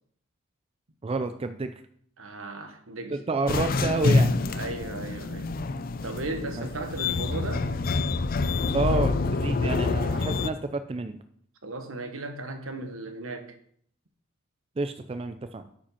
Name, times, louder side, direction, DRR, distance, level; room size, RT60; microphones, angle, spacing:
voice 1, 1.0-1.7 3.1-4.3 6.6-6.8 8.7-11.2 14.8-15.7, right 3 dB, 25° right, 9 dB, 0.4 m, -29 dB
voice 2, 2.2-3.2 4.5-5.5 6.0-7.7 11.6-13.5, right 2 dB, 75° right, 6 dB, 1.2 m, -36 dB
sound 1, 3.5-10.5, left 3 dB, 45° left, 0.4 m, -26 dB
8.6 x 5.2 x 5.5 m, 0.64 s
head